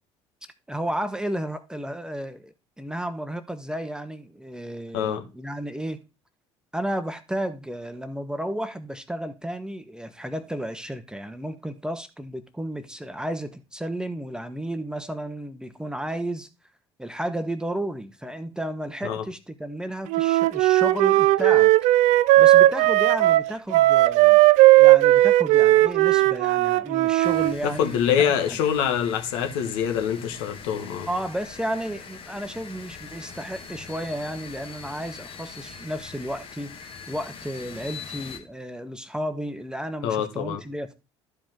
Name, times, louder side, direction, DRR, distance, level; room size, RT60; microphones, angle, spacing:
voice 1, 0.7-6.0 6.7-16.5 17.0-21.7 22.4-24.4 24.8-28.1 28.5-28.6 31.1-36.8 37.1-40.9, right 1 dB, 5° right, 1.0 m, -32 dB
voice 2, 4.9-5.3 19.0-19.2 27.8-31.1 40.0-40.6, left 8 dB, 65° left, 1.5 m, -25 dB
Wind instrument woodwind instrument, 20.1-27.5, right 17 dB, 55° right, 0.4 m, -17 dB
sound 1, 27.2-38.4, left 6 dB, 40° left, 1.8 m, -42 dB
12.5 x 5.1 x 3.6 m
figure-of-eight pair, 60°, 15 cm